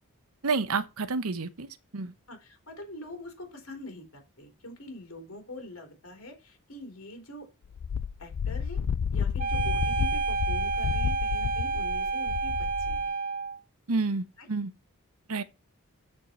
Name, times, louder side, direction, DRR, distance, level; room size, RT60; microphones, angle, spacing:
voice 1, 0.4-2.1 13.9-14.7 15.3-15.4, right 4 dB, 80° right, 0.9 m, -29 dB
voice 2, 2.3-7.5 8.2-8.8 9.1-13.1 14.4-14.5, left 1 dB, 65° left, 3.5 m, -44 dB
Wind, 7.7-13.1, left 6 dB, 90° left, 0.4 m, -31 dB
sound 1, 9.4-13.6, right 4 dB, 40° right, 1.3 m, -30 dB
13.5 x 4.6 x 4.3 m
head